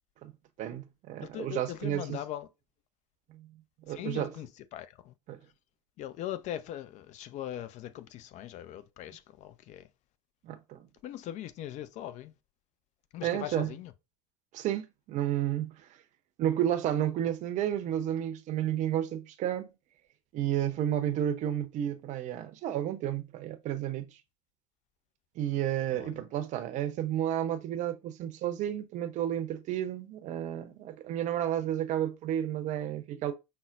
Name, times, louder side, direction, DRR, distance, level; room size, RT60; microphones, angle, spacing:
voice 1, 0.6-2.2 3.3-3.5 3.9-4.3 5.3-5.4 10.4-10.8 13.2-13.7 14.5-15.9 16.4-19.7 20.3-24.1 25.4-33.3, right 11 dB, 40° right, 0.7 m, -31 dB
voice 2, 1.2-2.5 3.9-5.1 6.0-9.9 11.0-12.3 13.1-13.9 25.9-26.2, left 12 dB, 40° left, 0.5 m, -40 dB
5.5 x 2.1 x 2.5 m
hypercardioid pair, 85°, 18 cm